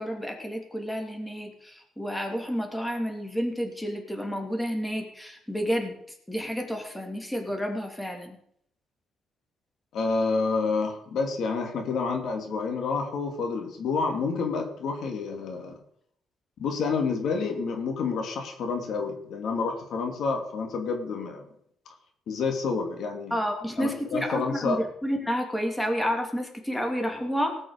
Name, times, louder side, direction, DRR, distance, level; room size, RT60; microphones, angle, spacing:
voice 1, 0.0-5.9 6.3-8.4 23.3-27.6, equal, 5° left, 3 dB, 2.8 m, -30 dB
voice 2, 9.9-15.8 16.6-21.5 22.3-23.3 23.8-24.8, left 4 dB, 70° left, 4 dB, 2.6 m, -29 dB
18.5 x 6.2 x 6.5 m, 0.69 s
cardioid pair, 90°, 0 cm